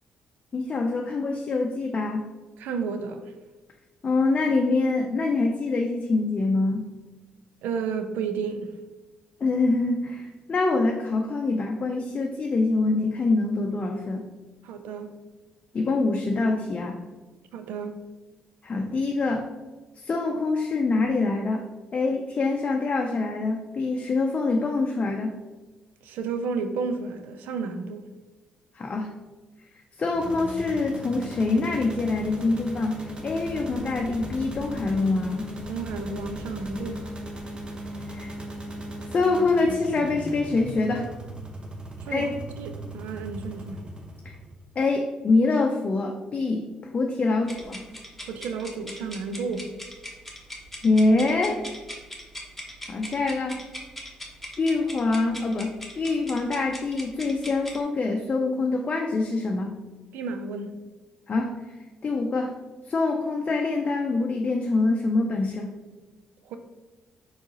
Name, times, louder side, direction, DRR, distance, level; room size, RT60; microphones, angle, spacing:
voice 1, 0.5-2.3 4.0-6.9 9.4-14.3 15.7-17.0 18.6-19.5 20.0-21.6 21.9-25.4 28.8-29.1 30.0-35.5 38.1-38.3 39.1-41.1 42.1-42.3 44.2-44.4 44.8-46.7 46.9-47.8 50.8-51.6 52.9-53.6 54.6-59.7 61.3-61.7 62.0-62.6 62.9-65.7, left 3 dB, 45° left, 0.5 m, -25 dB
voice 2, 2.6-3.4 7.6-8.7 14.6-15.1 17.5-18.0 26.0-28.1 35.7-37.1 42.0-42.3 42.6-43.8 48.3-49.7 60.1-60.8 66.4-66.6, right 5 dB, 75° right, 0.4 m, -32 dB
sound 1, 30.1-44.6, equal, 30° right, 1.0 m, -37 dB
sound 2, 47.4-57.8, equal, 5° left, 1.2 m, -40 dB
4.4 x 3.9 x 2.9 m
hypercardioid pair, 50°, 3 cm